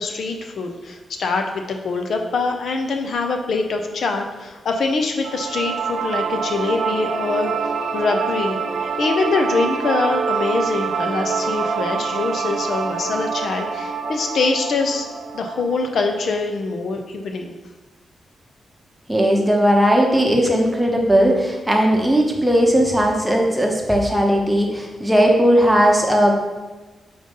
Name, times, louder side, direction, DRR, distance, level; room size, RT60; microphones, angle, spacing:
voice 1, 0.0-15.1 15.3-17.5, left 3 dB, 65° left, 4 dB, 0.7 m, -24 dB
sound 1, 5.2-16.3, right 5 dB, 90° right, 0.5 m, -26 dB
voice 2, 19.1-26.3, equal, 5° right, 0 dB, 0.9 m, -17 dB
5.2 x 3.9 x 5.3 m, 1.2 s
wide cardioid pair, 130°, 0 cm